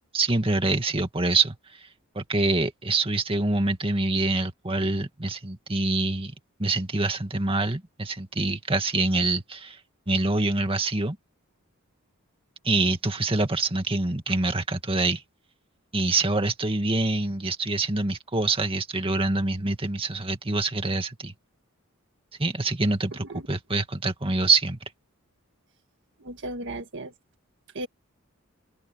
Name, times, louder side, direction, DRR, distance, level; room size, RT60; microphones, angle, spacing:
voice 1, 0.1-1.9 2.2-6.3 6.6-9.8 10.1-11.2 12.6-15.2 15.9-21.3 22.4-24.9, right 3 dB, 25° right, 2.1 m, -25 dB
voice 2, 26.2-27.1 27.7-27.9, right 1 dB, 60° right, 1.6 m, -35 dB
open air
head